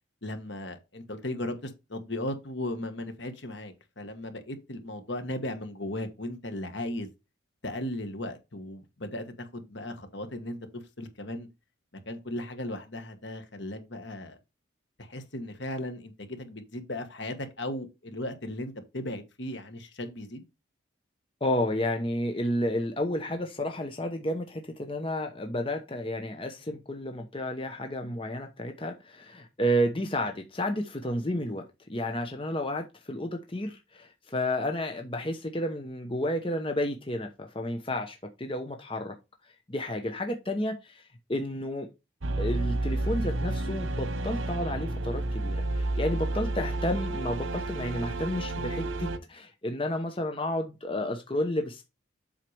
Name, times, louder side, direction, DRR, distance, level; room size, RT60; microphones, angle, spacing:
voice 1, 0.2-7.1 7.6-11.5 12.0-14.4 15.0-20.4, left 1 dB, 65° left, 1.6 m, -36 dB
voice 2, 21.4-31.6 31.9-39.1 39.7-41.0 41.3-41.9 42.4-51.8, left 1 dB, 25° left, 0.9 m, -31 dB
sound 1, 42.2-49.2, right 2 dB, 90° right, 1.0 m, -30 dB
7.7 x 5.7 x 3.4 m
head